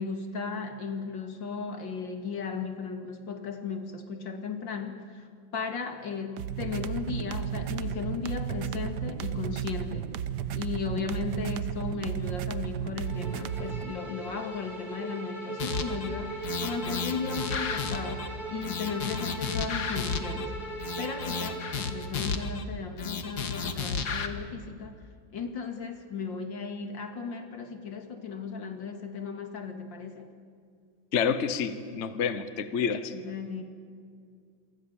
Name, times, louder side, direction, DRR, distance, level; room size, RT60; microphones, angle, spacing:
voice 1, 0.0-10.1 10.5-20.6 21.0-25.0 25.3-30.3 33.1-33.6, left 5 dB, 85° left, 6 dB, 2.9 m, -36 dB
sound 1, 6.4-13.9, right 9 dB, 70° right, 1.5 m, -33 dB
Bowed string instrument, 13.0-22.2, right 2 dB, 25° right, 4.6 m, -39 dB
sound 2, 15.6-16.1 16.4-18.3 18.6-20.5 20.8-22.6 23.0-24.3, left 5 dB, 60° left, 2.1 m, -32 dB
voice 2, 31.1-33.1, left 6 dB, 45° left, 12 dB, 1.3 m, -28 dB
28.0 x 24.0 x 7.2 m, 2.2 s
omnidirectional pair, 2.0 m